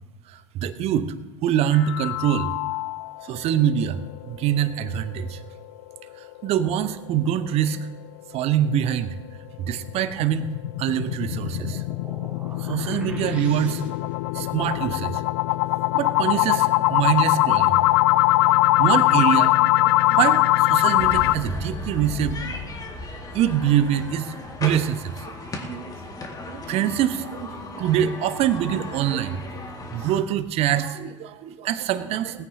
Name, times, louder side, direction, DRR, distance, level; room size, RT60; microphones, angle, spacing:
voice 1, 0.3-1.1 1.4-2.5 3.2-4.0 4.3-5.4 6.2-7.8 8.3-9.2 9.6-10.5 10.8-11.8 12.6-13.9 14.3-15.2 15.9-17.8 18.8-22.6 23.3-25.9 26.4-29.6 29.9-32.5, right 10 dB, 40° right, 12 dB, 1.0 m, -24 dB
sound 1, 1.7-3.2 3.6-3.7 4.1-4.2 4.6-4.7 9.5-21.3, left 18 dB, 55° left, 0.4 m, -21 dB
sound 2, 10.7-14.3, right 2 dB, 10° right, 3.3 m, -45 dB
sound 3, 21.0-30.2, left 2 dB, 25° left, 2.0 m, -36 dB
20.5 x 15.0 x 2.8 m, 1.2 s
figure-of-eight pair, 75°, 16 cm